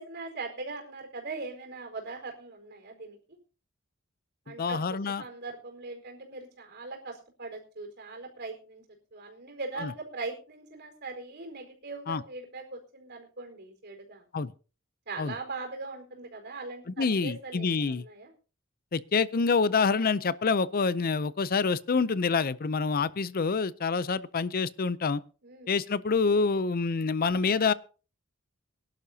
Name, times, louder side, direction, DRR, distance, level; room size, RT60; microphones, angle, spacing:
voice 1, 0.0-3.2 4.5-14.3 15.1-18.3 25.4-25.7, right 3 dB, 55° right, 4.5 m, -40 dB
voice 2, 4.5-5.2 9.8-9.9 12.1-12.2 14.3-14.5 15.2-15.3 17.0-18.0 18.9-25.2 25.7-27.7, left 4 dB, 45° left, 0.5 m, -27 dB
23.0 x 11.5 x 2.8 m
head